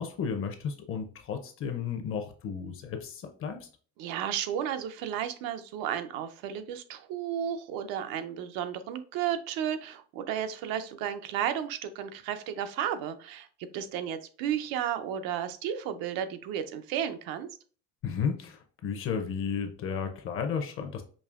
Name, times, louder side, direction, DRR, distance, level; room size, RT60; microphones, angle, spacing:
voice 1, 0.0-3.7 18.0-21.0, left 6 dB, 40° left, 6 dB, 0.6 m, -33 dB
voice 2, 4.0-13.5 13.7-17.5, right 9 dB, 90° right, 9 dB, 0.6 m, -33 dB
5.3 x 2.7 x 2.4 m, 0.40 s
cardioid pair, 170°, 34 cm